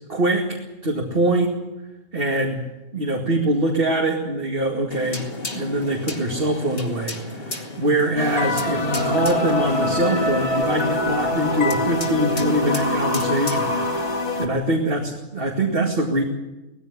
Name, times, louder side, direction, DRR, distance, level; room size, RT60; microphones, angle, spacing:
voice 1, 0.1-1.5 2.1-2.6 2.9-5.2 5.5-16.2, right 1 dB, 45° right, 0 dB, 2.5 m, -23 dB
sound 1, 4.9-14.1, left 2 dB, 45° left, 2.5 m, -34 dB
sound 2, 8.2-14.5, left 1 dB, 30° left, 2.1 m, -24 dB
19.0 x 15.5 x 9.8 m, 1.0 s
omnidirectional pair, 1.4 m